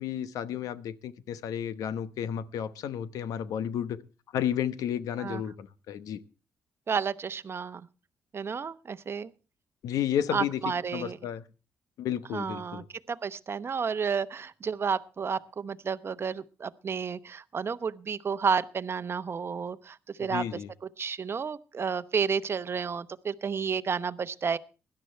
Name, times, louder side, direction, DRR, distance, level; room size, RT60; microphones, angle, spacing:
voice 1, 0.0-4.0 4.3-6.2 9.8-10.6 10.9-11.4 12.0-12.8 20.3-20.7, left 9 dB, 80° left, 1.0 m, -32 dB
voice 2, 6.9-7.9 8.3-9.3 10.3-11.2 12.3-20.4 21.0-24.6, right 6 dB, 45° right, 0.9 m, -31 dB
17.0 x 11.5 x 4.4 m
cardioid pair, 70°, 6 cm